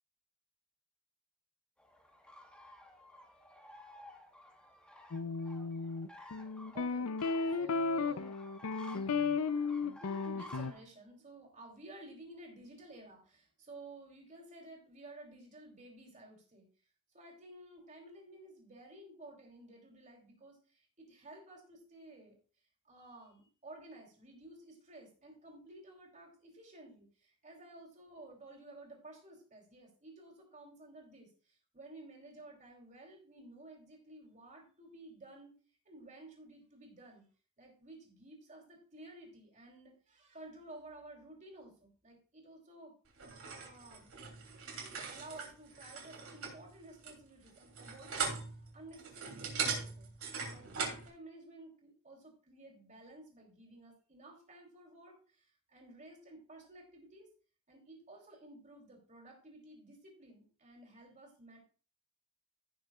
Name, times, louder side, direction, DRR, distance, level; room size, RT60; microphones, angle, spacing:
sound 1, 1.8-10.8, equal, 5° left, 1.2 m, -54 dB
sound 2, 5.1-10.7, left 4 dB, 80° left, 0.6 m, -34 dB
voice 1, 6.7-7.1 7.6-8.3 10.0-16.7 17.1-22.4 22.8-35.5 35.8-37.2 37.6-42.9 43.6-44.2 44.7-48.4 48.7-50.1 50.5-57.3 57.7-61.6, right 2 dB, 35° right, 1 dB, 3.2 m, -54 dB
sound 3, 43.2-51.1, right 5 dB, 75° right, 3.0 m, -40 dB
16.0 x 6.5 x 2.4 m, 0.39 s
head